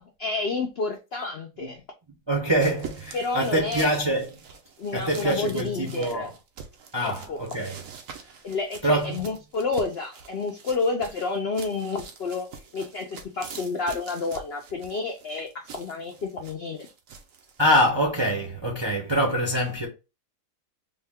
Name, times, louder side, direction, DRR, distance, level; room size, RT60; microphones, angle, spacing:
voice 1, 0.2-1.8 3.1-3.9 4.8-6.3 7.0-7.4 8.4-12.5 12.7-16.9, left 4 dB, 70° left, 0.5 m, -30 dB
voice 2, 2.3-4.5 4.9-6.3 6.9-7.8 8.8-9.2 17.6-19.9, equal, 25° right, 0.5 m, -25 dB
sound 1, 2.6-17.7, right 6 dB, 65° right, 0.9 m, -44 dB
3.5 x 2.2 x 3.5 m
omnidirectional pair, 1.7 m